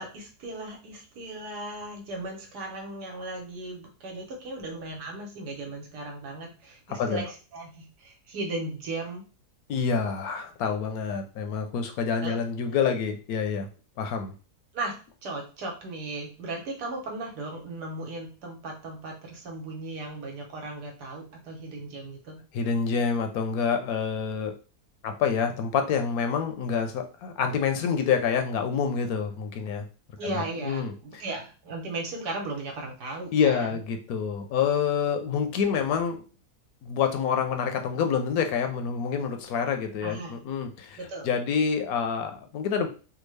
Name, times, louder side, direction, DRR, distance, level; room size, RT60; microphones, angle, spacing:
voice 1, 0.0-9.2 12.2-12.4 12.8-13.0 14.7-22.4 30.2-33.8 40.0-40.4 41.0-41.3, right 2 dB, 90° right, 1 dB, 1.6 m, -36 dB
voice 2, 6.9-7.2 9.7-13.7 14.0-14.3 22.5-24.5 25.0-29.8 30.2-30.9 33.3-36.2 36.8-42.9, left 6 dB, 75° left, 5 dB, 1.0 m, -27 dB
3.5 x 2.3 x 3.2 m, 0.35 s
omnidirectional pair, 1.7 m